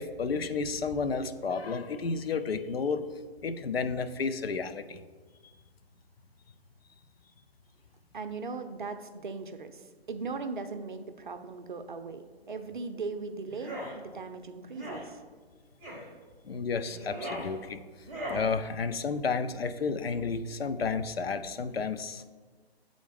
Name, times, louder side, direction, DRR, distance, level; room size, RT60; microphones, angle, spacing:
voice 1, 0.0-3.0 3.4-5.0 16.4-17.8 18.3-22.3, left 5 dB, 70° left, 10 dB, 0.5 m, -31 dB
voice 2, 8.1-15.2, right 4 dB, 50° right, 8 dB, 0.5 m, -39 dB
Voice Male Attack Mono, 13.5-13.9 14.7-15.0 15.8-16.1 16.9-17.5 18.0-18.5, equal, 5° right, 0.9 m, -38 dB
7.6 x 3.8 x 3.5 m, 1.4 s
figure-of-eight pair, 140°, 32 cm